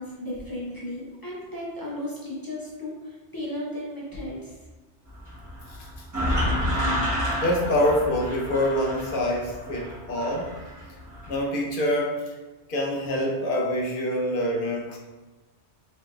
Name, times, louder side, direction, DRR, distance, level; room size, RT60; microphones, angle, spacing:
voice 1, 0.0-4.6, left 1 dB, 20° left, -7 dB, 0.8 m, -35 dB
sound 1, 5.1-11.4, equal, 15° right, 1.2 m, -30 dB
voice 2, 6.7-7.1 7.4-10.5 11.3-12.3 12.7-15.0, left 1 dB, 50° left, -1 dB, 0.9 m, -26 dB
4.8 x 3.1 x 2.5 m, 1.2 s
omnidirectional pair, 1.2 m